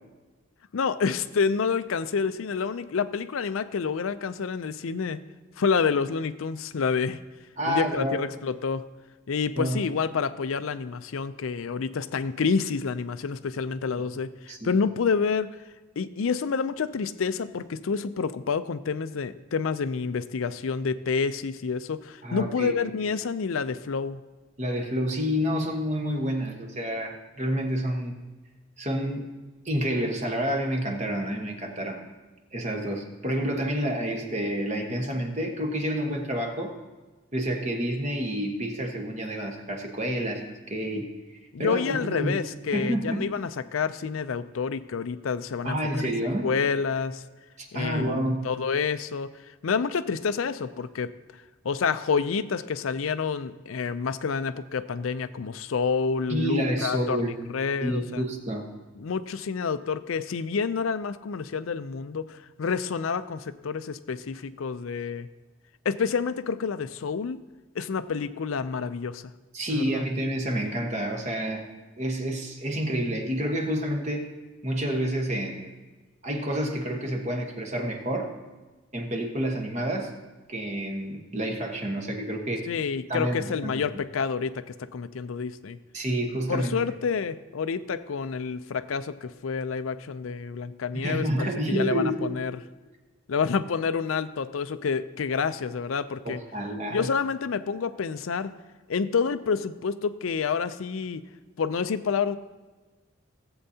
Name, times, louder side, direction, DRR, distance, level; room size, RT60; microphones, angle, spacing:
voice 1, 0.7-5.2 5.6-7.2 7.7-8.9 9.3-15.5 16.0-24.2 41.5-46.1 46.4-47.2 47.7-49.4 49.6-51.1 51.6-58.2 59.0-65.3 65.8-67.4 67.8-69.3 69.7-70.0 82.7-84.6 84.9-85.8 86.5-92.6 93.3-96.4 96.9-98.5 98.9-101.2 101.6-102.4, left 5 dB, 80° left, 13 dB, 0.5 m, -28 dB
voice 2, 7.6-8.2 9.6-9.8 14.5-14.7 22.2-23.1 24.6-28.1 28.8-29.3 29.6-32.0 32.5-36.7 37.3-41.1 41.6-42.3 42.7-43.3 45.6-46.5 47.6-48.5 56.3-57.3 57.8-58.6 69.5-71.7 72.0-74.4 74.6-75.7 76.2-78.3 78.9-80.2 80.5-82.7 83.1-83.8 85.9-86.8 90.9-92.4 96.2-97.1, equal, 35° right, 2 dB, 1.3 m, -29 dB
17.5 x 7.9 x 2.8 m, 1.2 s
head